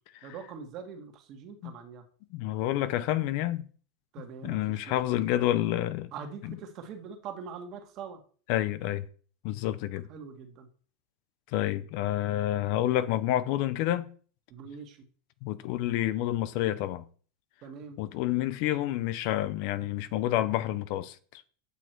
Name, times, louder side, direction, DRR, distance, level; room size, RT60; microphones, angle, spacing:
voice 1, 0.2-2.0 4.1-5.3 6.1-8.2 10.1-10.7 14.5-15.0 17.6-18.0, right 6 dB, 40° right, 1.7 m, -43 dB
voice 2, 2.3-3.7 4.4-6.1 6.4-6.5 8.5-9.0 9.4-10.1 11.5-14.1 15.4-17.0 18.0-21.4, left 13 dB, 55° left, 0.6 m, -29 dB
8.3 x 6.2 x 4.6 m
supercardioid pair, 145°, 0 cm